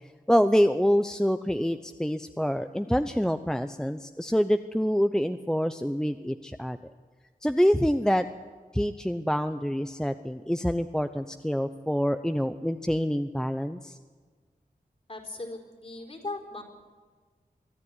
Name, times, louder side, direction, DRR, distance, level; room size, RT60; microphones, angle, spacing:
voice 1, 0.3-6.8 7.4-8.3 8.7-14.0, equal, 5° left, 9 dB, 0.7 m, -26 dB
voice 2, 15.1-16.6, left 2 dB, 40° left, 2 dB, 4.4 m, -38 dB
24.0 x 13.0 x 9.8 m, 1.5 s
wide cardioid pair, 85°, 15 cm